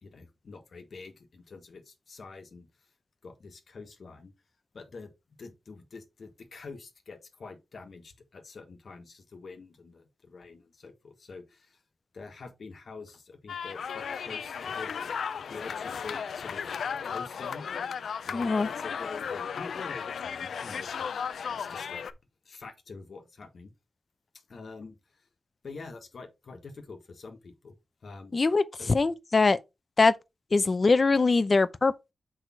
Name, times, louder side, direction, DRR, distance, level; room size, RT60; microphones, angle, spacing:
voice 1, 0.0-2.7 3.2-4.3 4.7-5.1 5.4-11.8 12.1-14.9 15.5-16.7 17.0-21.1 21.5-22.0 22.4-23.7 24.5-25.3 25.6-27.7 28.0-28.4 28.8-28.9, left 4 dB, 65° left, 1.4 m, -46 dB
sound 1, 13.5-22.1, left 6 dB, 85° left, 0.5 m, -35 dB
voice 2, 18.3-18.7 28.3-29.6 30.0-30.1 30.5-32.1, left 3 dB, 40° left, 0.6 m, -23 dB
6.3 x 4.9 x 4.3 m
wide cardioid pair, 95°, 0 cm